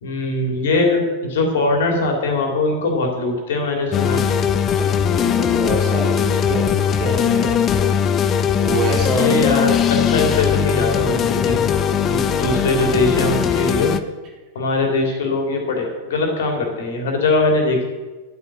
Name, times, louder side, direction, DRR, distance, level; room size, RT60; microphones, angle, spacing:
voice 1, 0.0-4.2 9.1-11.6 12.0-13.9 14.5-17.8, left 2 dB, 60° left, 2 dB, 3.1 m, -21 dB
sound 1, 3.9-14.0, left 8 dB, 30° left, 0.7 m, -19 dB
voice 2, 4.7-7.9 8.6-9.3, right 3 dB, 35° right, -1 dB, 3.3 m, -26 dB
11.0 x 8.5 x 6.2 m, 1.2 s
figure-of-eight pair, 90°, 0 cm